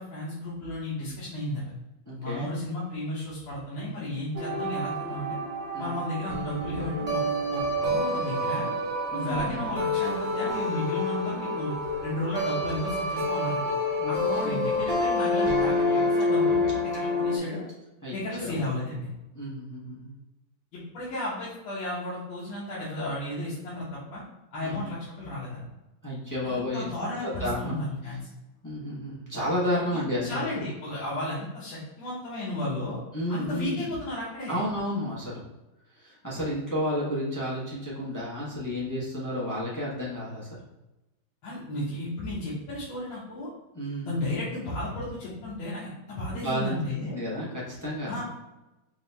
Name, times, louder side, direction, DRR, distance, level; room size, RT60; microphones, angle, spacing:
voice 1, 0.0-1.6 2.2-5.3 5.8-7.2 7.5-8.7 9.1-11.7 12.0-13.6 14.1-17.6 18.1-19.1 20.7-24.2 24.5-25.7 26.4-28.2 29.9-33.0 33.3-34.6 41.4-43.5 44.1-47.2 48.1-48.2, left 1 dB, 80° left, -8 dB, 1.8 m, -34 dB
voice 2, 2.1-2.5 5.7-6.0 9.1-9.7 14.0-14.7 18.0-18.5 19.3-20.1 24.6-24.9 26.0-26.9 27.2-27.8 28.6-30.5 33.1-33.9 34.5-35.4 35.9-40.6 43.7-44.1 46.3-46.8 47.1-48.1, equal, 15° left, -7 dB, 0.6 m, -31 dB
sound 1, 4.3-17.4, left 1 dB, 40° right, 1.1 m, -28 dB
4.7 x 2.8 x 3.3 m, 1.0 s
omnidirectional pair, 2.1 m